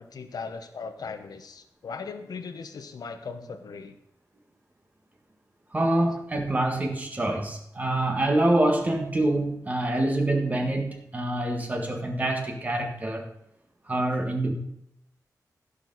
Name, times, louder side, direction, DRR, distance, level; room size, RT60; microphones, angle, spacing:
voice 1, 0.0-3.9, left 5 dB, 75° left, 7 dB, 0.9 m, -38 dB
voice 2, 5.7-13.3 13.9-14.5, right 1 dB, 25° right, 2 dB, 1.6 m, -26 dB
15.5 x 6.8 x 4.0 m, 0.75 s
wide cardioid pair, 180°, 7 cm